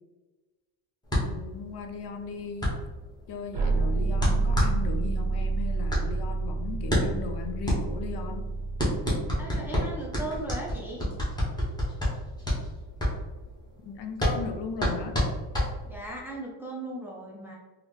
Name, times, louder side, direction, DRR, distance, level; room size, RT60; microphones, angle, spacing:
sound 1, 1.1-16.2, left 1 dB, 10° left, 0.9 m, -29 dB
voice 1, 1.2-2.8 3.3-8.5 13.8-15.2, left 5 dB, 75° left, 5 dB, 0.6 m, -37 dB
sound 2, 3.5-10.4, right 3 dB, 70° right, 0.7 m, -29 dB
voice 2, 9.4-11.1 15.9-17.6, right 1 dB, 5° right, -2 dB, 0.3 m, -37 dB
3.8 x 2.1 x 3.2 m, 1.2 s
cardioid pair, 165°, 42 cm